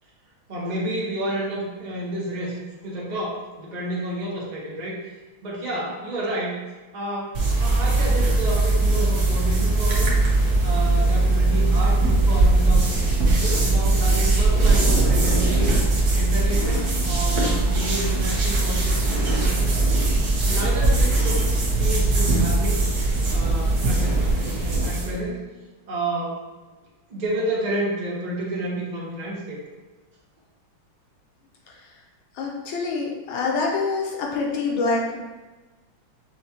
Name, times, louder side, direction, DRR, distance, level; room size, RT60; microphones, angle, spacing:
voice 1, 0.5-5.1 5.4-6.6 6.9-10.2 10.6-12.9 13.3-15.8 16.1-19.7 20.4-21.4 21.7-22.8 23.3-25.4 25.9-26.4 27.1-29.6, right 1 dB, 75° right, -5 dB, 0.4 m, -30 dB
sound 1, 7.3-25.1, right 2 dB, 55° right, 1.2 m, -20 dB
voice 2, 32.4-35.2, left 4 dB, 75° left, -1 dB, 1.5 m, -25 dB
6.2 x 2.2 x 2.8 m, 1.2 s
omnidirectional pair, 2.3 m